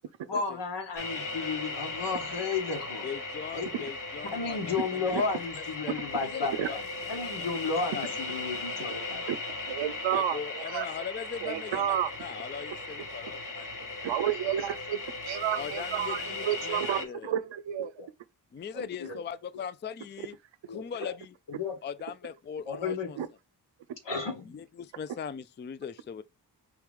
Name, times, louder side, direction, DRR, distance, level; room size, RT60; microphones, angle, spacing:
voice 1, 0.3-3.1 3.5-3.7 4.2-6.8 7.1-9.2 18.0-18.1 18.7-19.2 19.5-19.6 20.7-21.1 21.5-21.8 22.6-23.1 24.0-24.5, left 4 dB, 75° left, 1.8 m, -33 dB
sound 1, 1.0-17.1, left 3 dB, 45° left, 1.3 m, -37 dB
voice 2, 3.0-5.2 5.8-6.0 6.2-6.8 7.2-7.3 7.9-8.1 10.1-14.1 15.6-17.3 18.5-20.4 20.7-21.3 21.8-23.2 24.5-26.2, left 7 dB, 25° left, 0.4 m, -40 dB
voice 3, 9.7-10.9 11.4-12.1 14.0-17.9 23.2-23.3, right 11 dB, 90° right, 0.6 m, -31 dB
4.8 x 3.0 x 3.5 m
cardioid pair, 55°, 43 cm